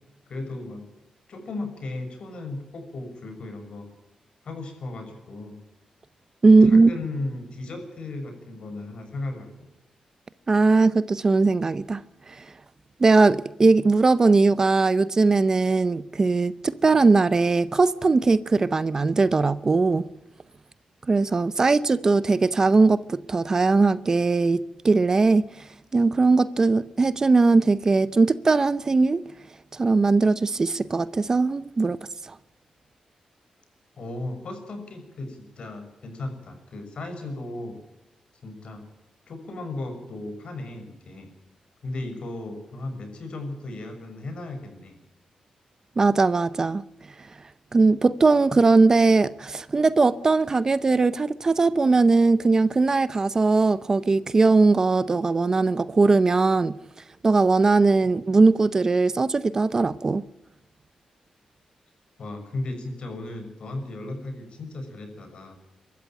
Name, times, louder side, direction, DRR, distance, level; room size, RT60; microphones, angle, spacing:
voice 1, 0.3-0.8 1.3-3.9 4.4-5.6 6.5-9.7 34.0-37.8 38.4-38.8 39.3-41.3 41.8-45.0 62.2-65.5, left 2 dB, 55° left, 6.1 m, -35 dB
voice 2, 6.4-6.9 10.5-12.0 13.0-20.1 21.1-25.4 25.9-29.2 29.7-32.0 32.3-32.4 46.0-46.8 47.7-56.8 57.2-60.2, right 3 dB, 30° right, 0.6 m, -20 dB
23.5 x 13.5 x 9.1 m
wide cardioid pair, 135°, 2 cm